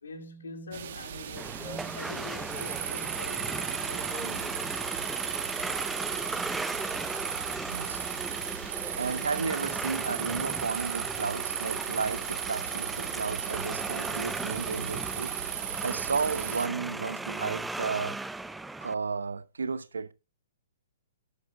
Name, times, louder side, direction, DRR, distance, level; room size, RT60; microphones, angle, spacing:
voice 1, 0.0-3.5 3.8-4.7, left 2 dB, 75° left, 2.2 m, -44 dB
sound 1, 0.7-16.7, right 10 dB, 55° right, 1.0 m, -36 dB
sound 2, 1.4-18.9, right 2 dB, 5° right, 0.5 m, -36 dB
voice 2, 7.7-8.0 8.9-15.3 15.8-18.2 18.8-20.1, right 5 dB, 80° right, 0.8 m, -33 dB
12.0 x 9.6 x 2.4 m
figure-of-eight pair, 120°, 0 cm